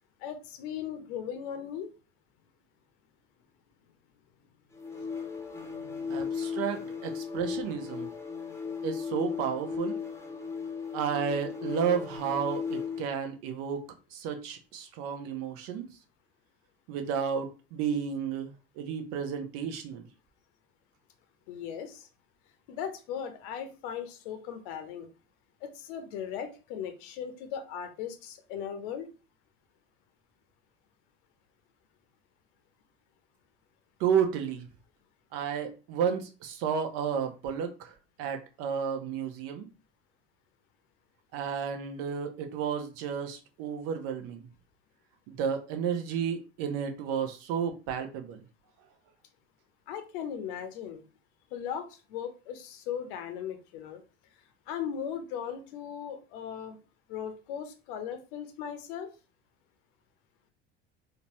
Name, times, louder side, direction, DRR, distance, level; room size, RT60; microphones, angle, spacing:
voice 1, 0.2-1.9 5.0-5.1 5.6-6.9 21.5-22.1 22.7-25.1 25.6-29.1 49.9-51.0 51.5-54.0 54.7-56.8 57.1-59.1, left 8 dB, 55° left, 0.7 m, -38 dB
sound 1, 4.7-13.1, left 6 dB, 10° left, 0.8 m, -36 dB
voice 2, 6.1-8.1 8.8-10.0 10.9-13.8 14.1-15.9 16.9-20.0 34.0-34.7 35.3-39.7 41.3-44.5 45.3-48.4, right 7 dB, 45° right, 0.7 m, -32 dB
3.8 x 2.2 x 3.0 m
figure-of-eight pair, 70°, 32 cm